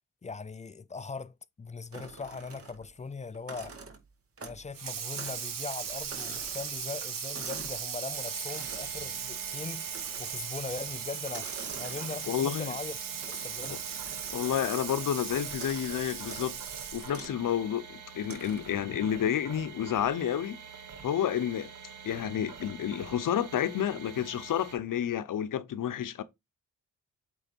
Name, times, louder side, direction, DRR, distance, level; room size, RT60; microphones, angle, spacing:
voice 1, 0.2-3.7 4.4-11.5 11.8-13.0 13.3-13.9, left 4 dB, 20° left, 0.5 m, -40 dB
sound 1, 1.9-3.0 3.3-4.7 5.1-5.5 5.7-7.9 8.5-9.0 9.9-10.4 11.2-12.5 13.2-14.9 15.5-15.9 16.2-16.5 17.1-17.4 18.2-18.8, right 4 dB, 45° right, 2.0 m, -47 dB
Water tap faucet / Sink (filling or washing), 4.7-17.2, right 7 dB, 90° right, 1.6 m, -38 dB
sound 2, 8.1-24.8, right 7 dB, 70° right, 1.8 m, -47 dB
voice 2, 12.3-12.8 13.7-13.8 14.3-16.6 16.9-20.6 21.0-21.7 22.0-26.2, left 9 dB, 75° left, 0.9 m, -30 dB
8.0 x 3.5 x 4.5 m
cardioid pair, 80°, 32 cm